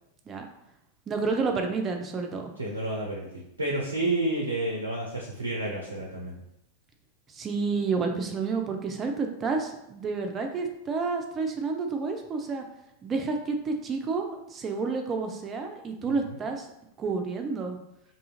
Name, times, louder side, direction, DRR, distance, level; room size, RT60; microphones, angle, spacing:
voice 1, 1.1-2.5 7.3-12.6 13.0-16.7 17.0-17.8, right 4 dB, 25° right, 4 dB, 0.4 m, -30 dB
voice 2, 2.6-6.4, right 2 dB, 80° right, -2 dB, 0.5 m, -30 dB
2.6 x 2.4 x 2.9 m, 0.82 s
figure-of-eight pair, 90°, 0 cm